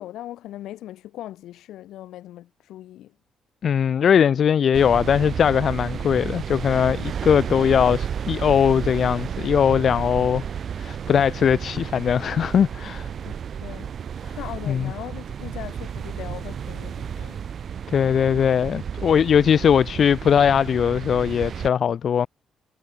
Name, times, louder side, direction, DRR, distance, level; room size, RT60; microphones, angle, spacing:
voice 1, 0.0-3.1 13.2-13.4 13.6-13.9 14.4-17.4, left 13 dB, 85° left, 5.5 m, -39 dB
voice 2, 3.6-10.4 10.8-13.1 14.2-14.3 14.7-14.9 17.9-22.3, left 8 dB, 55° left, 1.0 m, -20 dB
sound 1, 4.7-21.7, right 8 dB, 55° right, 1.9 m, -32 dB
cardioid pair, 90°, 0 cm